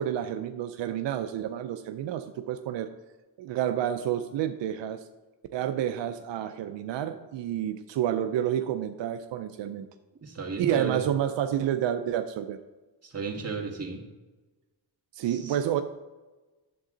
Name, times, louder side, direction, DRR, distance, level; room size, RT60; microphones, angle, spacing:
voice 1, 0.0-2.9 3.4-5.0 5.5-9.9 10.6-12.6 15.1-15.8, right 10 dB, 85° right, 8 dB, 0.6 m, -29 dB
voice 2, 10.2-11.0 13.0-14.0 15.3-15.5, right 4 dB, 35° right, 0 dB, 1.9 m, -34 dB
10.0 x 7.6 x 3.9 m, 1.2 s
cardioid pair, 85°, 43 cm